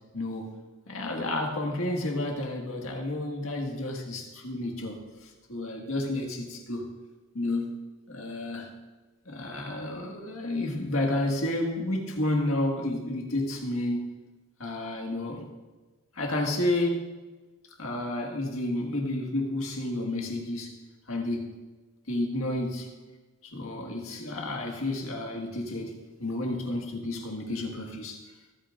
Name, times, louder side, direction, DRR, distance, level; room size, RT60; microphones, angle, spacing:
voice 1, 0.1-0.5 0.9-5.0 5.2-6.9 7.3-7.8 8.1-8.7 9.3-14.1 14.6-15.5 16.1-17.1 17.8-20.8 21.1-21.5 22.1-22.9 23.4-28.2, left 1 dB, 70° left, 0 dB, 1.8 m, -31 dB
22.5 x 8.7 x 2.6 m, 1.2 s
head